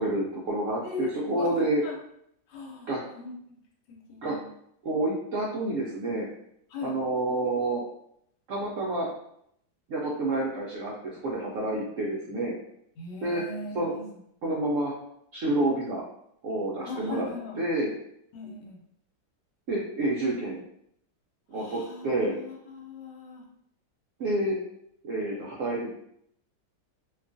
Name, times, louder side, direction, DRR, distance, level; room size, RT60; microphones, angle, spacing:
voice 1, 0.0-1.8 2.9-3.0 4.2-4.4 4.8-6.3 6.8-7.8 8.5-9.1 9.9-12.5 13.2-13.4 13.7-13.9 14.4-14.9 15.3-16.0 16.4-17.3 17.6-17.9 19.7-20.6 21.5-22.4 24.2-24.6 25.0-25.9, right 2 dB, 80° right, -3 dB, 0.7 m, -28 dB
voice 2, 0.8-2.0 2.5-3.3 3.9-4.5 5.7-5.9 6.7-7.0 13.0-14.0 14.4-14.5 16.8-17.5 18.3-18.8 21.5-22.0 22.3-23.4, left 3 dB, 80° left, 0 dB, 1.3 m, -39 dB
2.8 x 2.3 x 2.5 m, 0.72 s
omnidirectional pair, 1.9 m